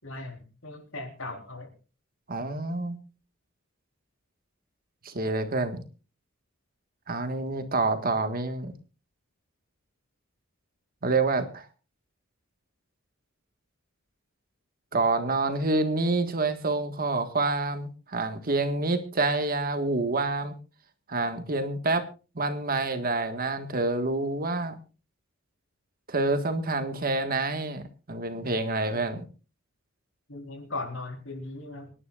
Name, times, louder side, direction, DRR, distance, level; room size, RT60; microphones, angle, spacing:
voice 1, 0.0-1.7 28.9-29.0 30.3-31.9, left 2 dB, 70° left, 3 dB, 4.3 m, -38 dB
voice 2, 2.3-3.0 5.0-5.8 7.1-8.7 11.0-11.7 14.9-20.6 21.1-22.1 22.4-24.8 26.1-27.8 28.1-29.3, right 3 dB, 45° right, 8 dB, 1.8 m, -27 dB
26.0 x 11.0 x 2.5 m, 0.34 s
head